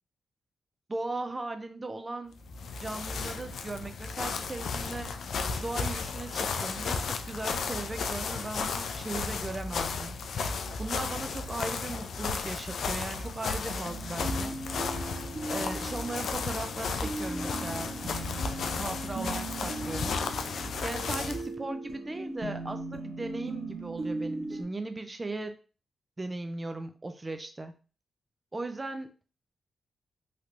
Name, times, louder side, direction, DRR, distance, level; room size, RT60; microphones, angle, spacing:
voice 1, 0.9-2.3 2.8-5.1 5.6-10.1 10.8-14.6 15.5-17.9 18.7-20.4 20.8-25.6 26.2-27.7 28.5-29.1, right 2 dB, 30° right, 8 dB, 0.4 m, -37 dB
sound 1, 2.4-21.5, left 4 dB, 75° left, 0.3 m, -34 dB
sound 2, 13.8-24.6, right 2 dB, 65° right, 1.0 m, -38 dB
3.2 x 2.8 x 2.5 m, 0.35 s
cardioid pair, 55°, 0 cm